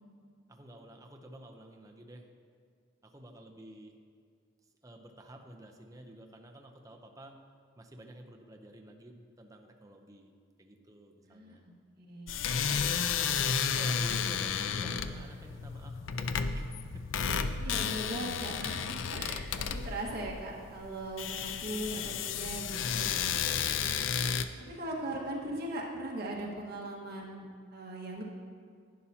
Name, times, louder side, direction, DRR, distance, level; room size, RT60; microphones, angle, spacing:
voice 1, 0.5-2.3 3.0-4.0 4.8-7.4 7.8-10.3 10.6-11.6 13.6-17.1 23.5-24.1, right 1 dB, 20° right, 2 dB, 0.7 m, -51 dB
voice 2, 11.2-12.3 13.6-13.8 14.8-15.0 17.6-23.3 24.6-27.5 27.7-28.2, right 1 dB, 55° right, -3 dB, 1.6 m, -39 dB
sound 1, 12.3-24.4, left 6 dB, 90° left, 0.4 m, -32 dB
11.0 x 9.9 x 2.8 m, 2.1 s
head